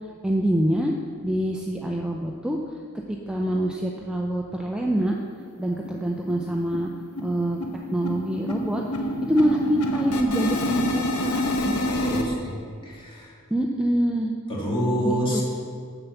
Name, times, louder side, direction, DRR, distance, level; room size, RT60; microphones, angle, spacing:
voice 1, 0.2-0.9 1.2-2.6 3.1-5.2 5.6-6.9 7.2-7.6 7.9-8.8 9.2-11.8 12.0-12.4 13.5-14.3 15.0-15.4, right 1 dB, 5° right, 0 dB, 0.5 m, -25 dB
sound 1, 5.0-5.1 5.4-5.5 5.8-6.0 6.3-12.2, left 1 dB, 85° left, 1.0 m, -28 dB
voice 2, 11.9-13.3 14.5-15.4, equal, 25° left, -4 dB, 2.1 m, -27 dB
7.6 x 7.0 x 6.8 m, 2.2 s
head